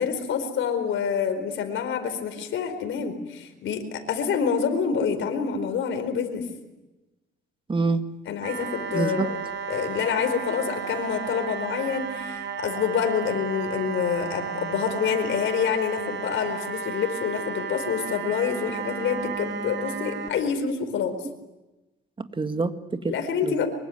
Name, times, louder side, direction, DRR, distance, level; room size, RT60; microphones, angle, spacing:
voice 1, 0.0-6.4 8.3-9.4 9.7-21.2 23.1-23.7, left 7 dB, 75° left, 7 dB, 4.6 m, -27 dB
voice 2, 7.7-8.0 8.9-9.3 22.2-23.2 23.4-23.7, right 3 dB, 25° right, 8 dB, 2.0 m, -26 dB
sound 1, 8.4-20.3, right 6 dB, 65° right, 5.3 m, -33 dB
24.5 x 24.0 x 9.3 m, 1.0 s
cardioid pair, 90°, 20 cm